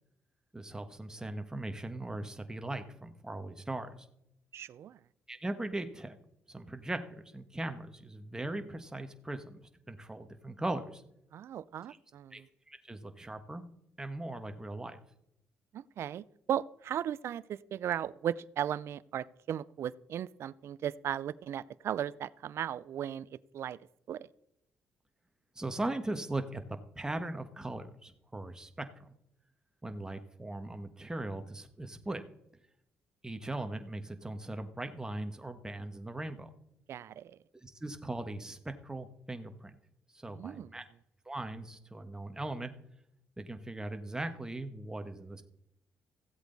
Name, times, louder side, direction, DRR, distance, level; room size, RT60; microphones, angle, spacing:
voice 1, 0.5-3.9 5.3-6.2 6.5-9.6 9.9-11.0 12.3-12.4 12.7-13.6 14.0-15.0 25.6-26.6 27.0-29.1 29.8-32.2 33.2-36.5 37.6-39.8 40.2-40.8 41.3-42.7 43.4-45.4, right 2 dB, 15° right, 7 dB, 1.4 m, -39 dB
voice 2, 4.5-5.0 11.3-12.5 15.7-23.8 24.1-24.3 36.9-37.4 40.3-40.7, right 10 dB, 65° right, 20 dB, 0.4 m, -37 dB
15.0 x 8.0 x 4.1 m, 0.79 s
supercardioid pair, 65°, 5 cm